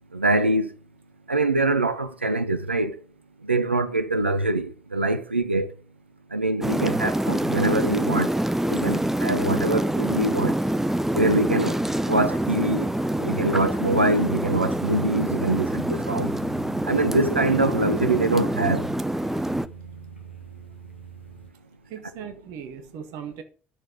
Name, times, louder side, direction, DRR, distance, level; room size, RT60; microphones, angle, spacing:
voice 1, 0.1-0.7 1.3-3.0 3.4-5.7 6.3-8.3 8.7-10.5 11.1-11.8 12.1-12.9 13.2-16.3 16.9-18.9, right 2 dB, 85° right, 0.5 m, -24 dB
sound 1, 6.6-19.7, right 1 dB, 5° right, 0.6 m, -26 dB
sound 2, 8.6-21.5, right 7 dB, 90° left, 0.9 m, -43 dB
voice 2, 21.9-23.4, right 8 dB, 60° right, 1.2 m, -38 dB
10.5 x 6.6 x 5.2 m
figure-of-eight pair, 50°, 6 cm